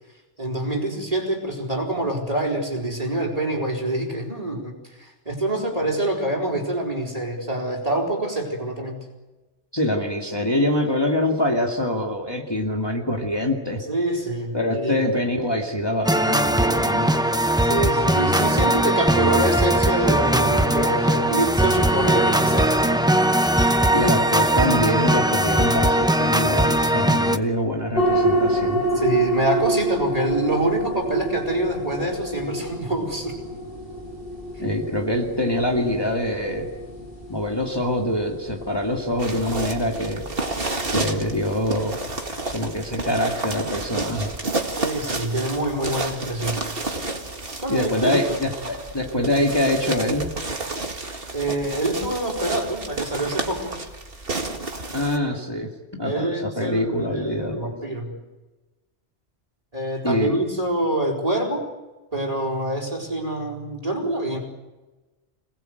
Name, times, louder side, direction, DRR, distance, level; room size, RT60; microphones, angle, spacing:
voice 1, 0.4-9.0 13.9-15.1 17.6-23.0 28.9-33.4 44.8-46.6 47.6-48.4 51.3-53.8 56.0-58.2 59.7-61.6 62.1-64.4, right 1 dB, 30° right, 2 dB, 4.6 m, -26 dB
voice 2, 9.7-13.8 14.5-17.1 23.9-28.8 34.6-36.7 37.3-40.2 40.9-42.0 42.5-44.3 47.7-50.3 54.9-57.7 60.0-60.4, left 1 dB, 20° left, 0 dB, 2.2 m, -24 dB
sound 1, 16.0-27.4, right 1 dB, 5° right, 0.7 m, -20 dB
sound 2, 28.0-42.8, right 1 dB, 50° left, 6.7 m, -28 dB
sound 3, 39.2-55.2, right 2 dB, 50° right, 2.3 m, -30 dB
26.5 x 20.0 x 8.0 m, 1.1 s
omnidirectional pair, 1.2 m